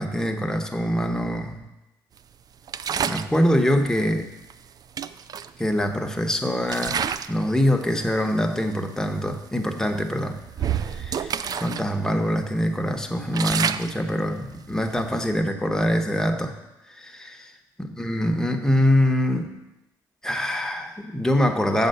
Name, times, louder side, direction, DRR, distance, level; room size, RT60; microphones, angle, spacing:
voice 1, 0.0-1.6 3.1-4.3 5.6-7.0 7.3-10.4 11.0-16.5 17.0-17.3 17.8-19.5 20.2-21.9, equal, 5° left, 4 dB, 1.0 m, -24 dB
sound 1, 2.7-3.4 4.5-4.6 5.0-6.2 6.6-7.4 7.8-8.1 8.7-8.8 9.2-9.4 9.9-11.9 12.2-12.3 12.8-15.3, right 8 dB, 45° right, 0.3 m, -29 dB
7.0 x 5.4 x 6.7 m, 0.98 s
supercardioid pair, 70°, 9 cm